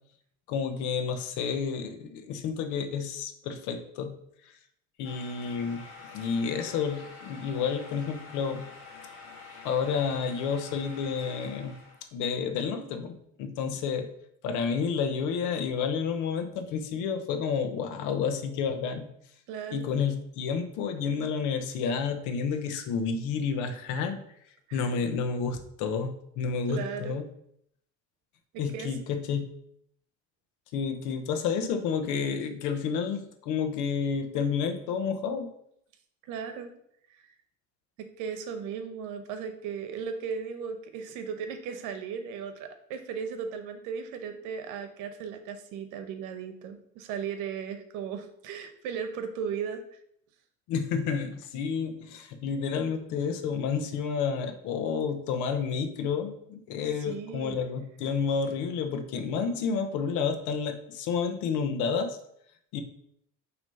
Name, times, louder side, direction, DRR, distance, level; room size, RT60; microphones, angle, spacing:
voice 1, 0.5-4.1 5.0-5.8 6.1-8.7 9.6-11.8 12.1-14.1 14.4-19.1 19.7-24.2 24.7-27.2 28.6-29.4 30.7-35.5 50.7-62.2 62.7-62.8, left 6 dB, 75° left, 8 dB, 0.9 m, -30 dB
sound 1, 5.0-12.0, left 4 dB, 45° left, 1.4 m, -47 dB
voice 2, 19.5-19.9 24.7-24.9 26.7-27.2 28.5-28.9 36.2-36.7 37.1-37.2 38.0-49.8 57.1-57.6, right 6 dB, 80° right, 8 dB, 0.9 m, -36 dB
6.2 x 3.1 x 5.4 m, 0.71 s
cardioid pair, 150°, 30 cm